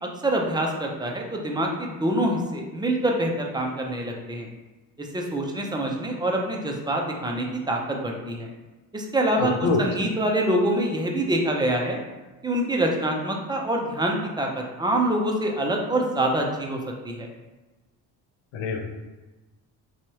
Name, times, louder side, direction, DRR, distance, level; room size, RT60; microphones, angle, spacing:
voice 1, 0.0-4.5 5.0-8.5 8.9-12.0 12.4-16.8 17.0-17.3, right 1 dB, 10° right, 0 dB, 0.5 m, -25 dB
voice 2, 9.4-9.8 18.5-18.8, left 4 dB, 70° left, 3 dB, 0.6 m, -25 dB
2.6 x 2.3 x 3.0 m, 1.2 s
hypercardioid pair, 50°, 45 cm